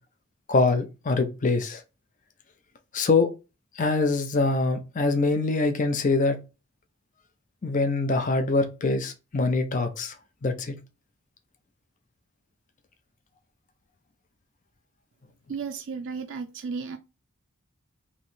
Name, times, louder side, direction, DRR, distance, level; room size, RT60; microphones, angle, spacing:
voice 1, 0.5-1.8 2.9-3.3 3.8-6.4 7.6-10.1 10.4-10.7, left 3 dB, 40° left, 0.5 m, -24 dB
voice 2, 15.5-17.0, right 5 dB, 60° right, 0.4 m, -34 dB
3.0 x 2.7 x 4.3 m
head